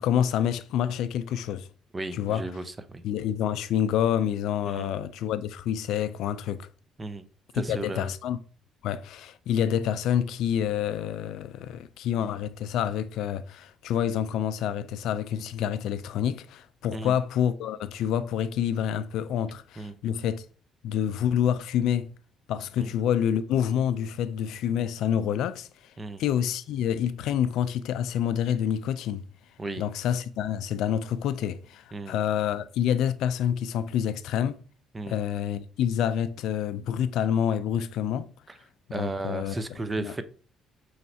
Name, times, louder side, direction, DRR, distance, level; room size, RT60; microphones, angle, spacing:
voice 1, 0.0-1.7 2.1-2.4 3.0-6.7 7.7-8.4 8.8-20.4 20.8-22.1 22.5-25.7 26.2-29.2 29.8-34.6 35.1-38.3 38.9-39.5 40.0-40.1, left 9 dB, 80° left, 0.3 m, -27 dB
voice 2, 1.9-3.0 4.7-4.9 7.0-7.2 7.5-8.1 16.9-17.1 19.8-19.9 22.8-22.9 26.0-26.2 29.6-29.9 31.9-32.2 34.9-35.2 38.5-38.6 38.9-40.2, right 2 dB, 25° right, 0.5 m, -34 dB
5.5 x 3.2 x 2.7 m
cardioid pair, 85°, 0 cm